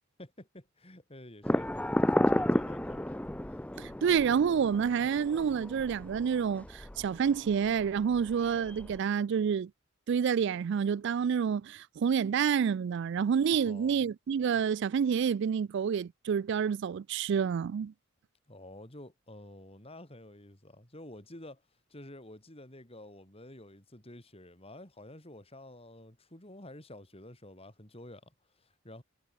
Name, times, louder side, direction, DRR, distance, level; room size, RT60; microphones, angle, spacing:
voice 1, 0.2-3.2 3.5-3.6 13.5-14.1 18.5-21.6 21.9-29.0, left 1 dB, 30° left, 4.1 m, -50 dB
sound 1, 1.4-9.0, left 1 dB, 5° left, 0.6 m, -33 dB
voice 2, 3.8-9.7 10.1-17.9, right 7 dB, 55° right, 0.3 m, -28 dB
head